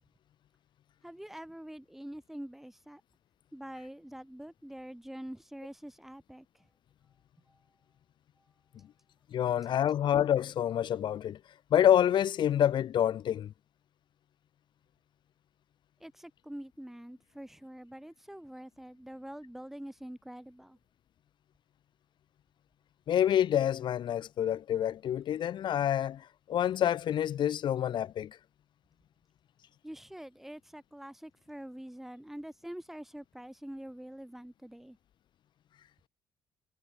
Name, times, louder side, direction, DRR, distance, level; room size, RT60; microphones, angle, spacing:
voice 1, 1.0-3.0 3.5-6.7 7.5-7.6 16.0-20.8 29.8-35.0, right 1 dB, 5° right, 4.3 m, -45 dB
voice 2, 9.3-11.4 11.7-13.5 23.1-28.4, left 10 dB, 70° left, 1.4 m, -27 dB
cardioid pair, 150°, 8 cm